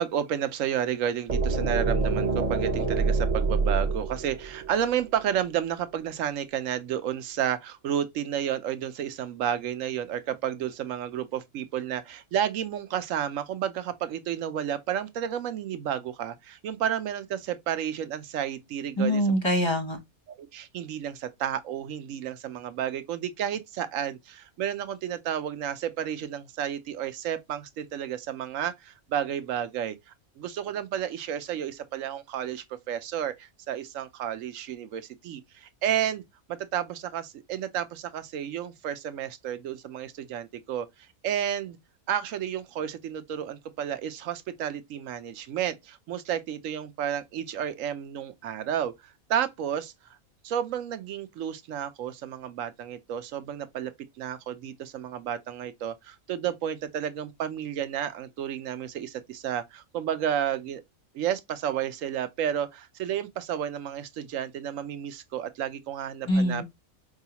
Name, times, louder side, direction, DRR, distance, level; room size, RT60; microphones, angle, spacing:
voice 1, 0.0-19.2 20.4-29.9 30.4-36.2 36.5-40.9 41.2-41.8 42.1-49.9 50.4-53.9 54.2-60.8 61.1-66.6, right 9 dB, 70° right, 1.0 m, -31 dB
sound 1, 1.3-5.2, right 4 dB, 35° right, 0.8 m, -26 dB
voice 2, 19.0-20.0 66.3-66.6, equal, 25° left, 0.7 m, -24 dB
4.8 x 2.3 x 2.8 m
omnidirectional pair, 1.5 m